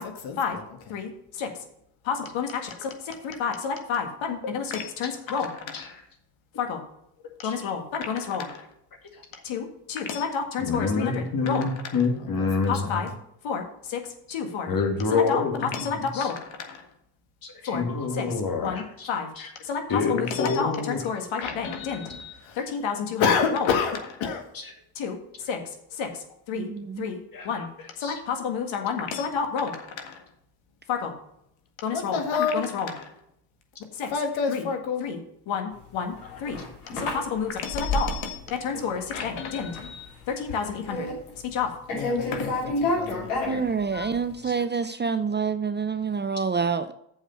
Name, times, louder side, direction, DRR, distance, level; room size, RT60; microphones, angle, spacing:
voice 1, 0.0-1.5 2.0-5.9 6.6-6.8 7.4-8.6 9.4-11.7 12.4-13.1 13.4-14.7 15.1-16.8 17.7-17.8 18.1-18.3 18.6-19.3 19.6-24.4 25.0-26.7 27.0-27.2 27.4-27.7 28.0-30.2 30.9-31.1 31.8-33.1 33.9-35.2 35.5-36.1 36.4-36.6 36.9-41.1 41.5-43.6 43.9-44.1, left 6 dB, 70° left, 5 dB, 1.9 m, -29 dB
voice 2, 10.6-13.1 14.7-16.3 17.4-19.1 19.4-19.5 19.9-21.0 24.5-24.6 27.3-27.5 28.0-28.2 44.4-44.5, left 4 dB, 45° left, 4 dB, 2.4 m, -27 dB
voice 3, 26.5-27.1 43.5-46.9, right 5 dB, 20° right, 11 dB, 0.6 m, -27 dB
sound 1, 36.0-38.5 38.7-39.3 39.6-39.9 40.2-41.6 41.9-44.2, left 2 dB, 90° left, 3.1 m, -30 dB
7.2 x 5.4 x 7.0 m, 0.75 s
hypercardioid pair, 60°, 49 cm